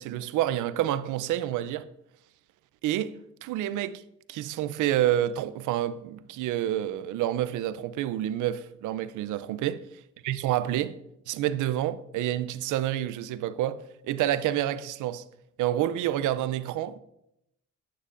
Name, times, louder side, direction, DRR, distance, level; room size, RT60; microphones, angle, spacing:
voice 1, 0.0-1.9 2.8-4.0 4.3-9.8 10.2-11.0 11.3-15.2 15.6-17.0, right 12 dB, 85° right, 0.5 m, -28 dB
9.6 x 8.2 x 2.5 m
cardioid pair, 90°, 30 cm